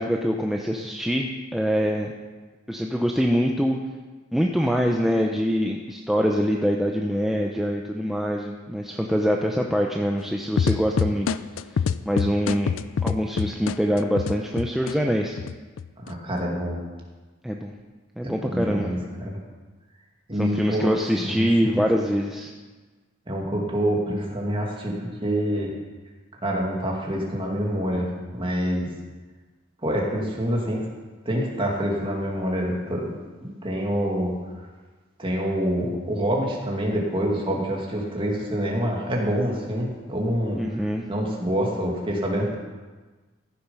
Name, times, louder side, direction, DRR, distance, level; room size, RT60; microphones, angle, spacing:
voice 1, 0.0-2.1 2.7-3.8 4.3-11.3 12.1-12.7 13.0-15.4 17.4-17.7 18.2-18.9 20.4-22.5 40.6-41.1, equal, ahead, 1 dB, 0.6 m, -24 dB
sound 1, 10.6-14.9 15.4-16.1, left 6 dB, 80° left, 0.4 m, -25 dB
voice 2, 16.0-16.8 18.2-19.4 20.3-21.8 23.3-25.7 26.4-28.9 29.8-30.8 31.3-34.3 35.2-40.6 41.1-42.6, equal, 25° right, -2 dB, 2.2 m, -26 dB
14.5 x 7.1 x 5.6 m, 1.3 s
head